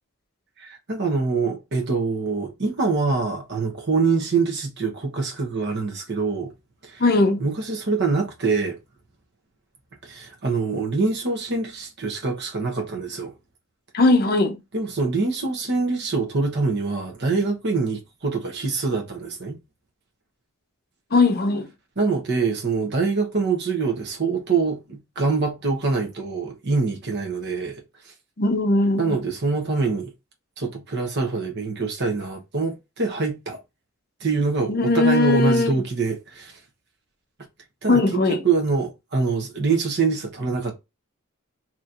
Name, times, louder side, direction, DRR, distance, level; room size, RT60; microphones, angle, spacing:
voice 1, 0.6-6.5 6.8-7.0 7.4-8.8 10.0-13.3 14.7-19.6 22.0-28.1 29.0-30.1 30.6-33.6 34.2-36.6 37.8-38.0 38.4-40.7, right 4 dB, 50° right, 0.9 m, -25 dB
voice 2, 7.0-7.4 13.9-14.6 21.1-21.7 28.4-29.2 34.7-35.8 37.9-38.4, left 2 dB, 45° left, 0.6 m, -19 dB
4.2 x 3.0 x 2.5 m
head